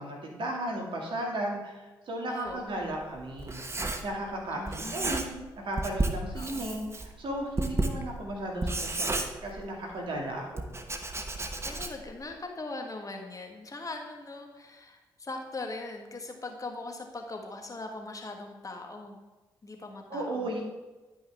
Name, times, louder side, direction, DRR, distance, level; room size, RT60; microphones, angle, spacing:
voice 1, 0.0-3.6 4.0-5.3 5.6-10.6 20.1-20.6, right 1 dB, 60° right, -1 dB, 2.1 m, -35 dB
voice 2, 2.3-3.0 4.5-5.4 6.3-6.8 11.6-19.2 19.6-20.5, left 2 dB, 35° left, 3 dB, 1.4 m, -41 dB
Writing, 2.5-4.4 4.7-5.5 5.8-9.9 10.6-12.2, right 2 dB, 25° right, 1.0 m, -33 dB
10.5 x 5.4 x 3.4 m, 1.2 s
hypercardioid pair, 40°, 10 cm